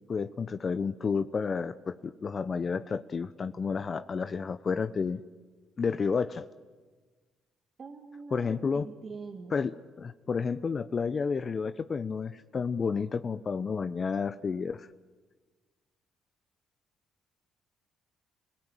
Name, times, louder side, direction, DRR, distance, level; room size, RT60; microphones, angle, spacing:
voice 1, 0.1-5.2 5.8-6.4 8.3-8.9 9.5-14.9, left 5 dB, 45° left, 12 dB, 0.8 m, -31 dB
voice 2, 7.8-9.6, right 4 dB, 45° right, 3 dB, 2.3 m, -44 dB
30.0 x 17.5 x 9.1 m, 1.4 s
supercardioid pair, 60°, 0 cm